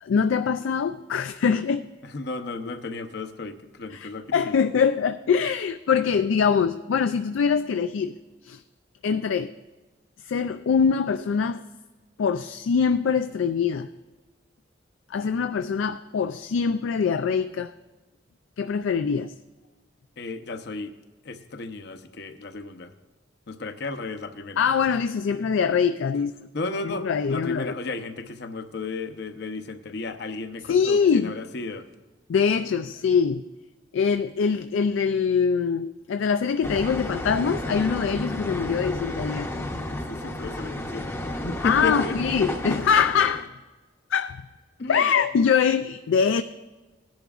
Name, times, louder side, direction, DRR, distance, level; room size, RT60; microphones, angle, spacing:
voice 1, 0.0-1.9 3.9-8.2 8.4-8.6 9.0-9.5 10.3-11.6 12.2-13.9 15.1-17.7 18.6-19.3 24.6-26.4 26.8-27.7 30.7-31.3 32.3-33.5 33.9-39.5 40.2-40.3 41.6-43.5 44.1-44.4 44.9-46.4, left 6 dB, 80° left, 9 dB, 0.4 m, -23 dB
voice 2, 2.0-4.5 20.2-20.9 21.2-22.9 23.5-24.6 26.1-26.2 26.5-31.9 39.9-41.1 41.4-42.2 44.8-45.1, left 3 dB, 60° left, 9 dB, 0.8 m, -34 dB
sound 1, 36.6-43.4, left 1 dB, 15° left, 0.7 m, -32 dB
18.0 x 10.5 x 2.4 m, 1.2 s
head